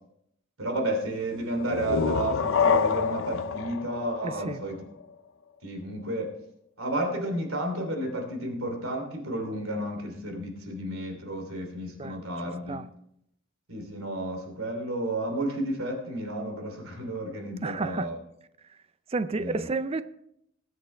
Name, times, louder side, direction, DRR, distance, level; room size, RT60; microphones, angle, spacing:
voice 1, 0.6-4.8 5.6-6.3 6.8-12.8 13.7-18.1 19.4-19.7, right 1 dB, 80° right, 3 dB, 3.0 m, -32 dB
sound 1, 1.6-5.1, left 6 dB, 60° left, 0.5 m, -27 dB
voice 2, 4.2-4.6 12.0-12.2 12.7-12.9 17.6-18.1 19.1-20.0, right 3 dB, 30° right, 13 dB, 0.4 m, -31 dB
20.5 x 8.0 x 3.3 m, 0.76 s
head